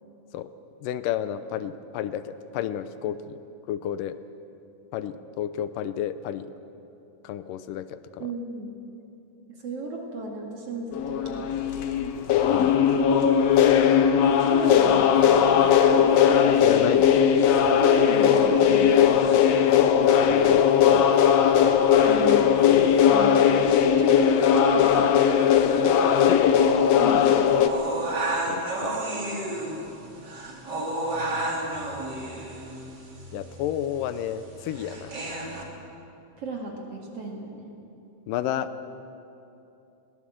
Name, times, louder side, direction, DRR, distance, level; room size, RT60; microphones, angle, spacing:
voice 1, 0.8-3.4 3.7-4.2 4.9-6.5 7.2-8.2 12.5-12.7 16.6-17.1 20.3-21.1 26.2-26.7 28.5-29.0 33.3-35.2 38.3-38.7, left 10 dB, 85° left, 12 dB, 2.4 m, -31 dB
voice 2, 8.2-8.8 9.6-11.8 14.5-15.8 17.8-19.3 22.1-22.5 23.1-23.4 24.0-25.1 27.0-27.3 36.4-37.7, right 2 dB, 50° right, 0 dB, 2.8 m, -34 dB
sound 1, 10.9-27.7, left 8 dB, 70° left, 1.7 m, -19 dB
sound 2, 27.6-35.6, right 2 dB, 35° right, 3.0 m, -32 dB
21.5 x 18.5 x 7.7 m, 2.8 s
omnidirectional pair, 3.8 m